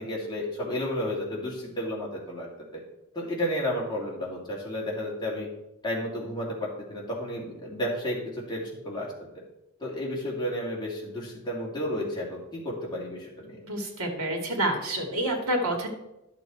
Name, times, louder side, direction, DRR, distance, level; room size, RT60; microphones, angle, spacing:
voice 1, 0.0-2.5 3.1-5.5 5.8-6.6 6.9-9.4 9.8-13.6, equal, 20° left, -4 dB, 2.5 m, -32 dB
voice 2, 13.6-15.9, right 1 dB, 80° right, 2 dB, 2.1 m, -28 dB
11.0 x 6.9 x 4.5 m, 0.90 s
head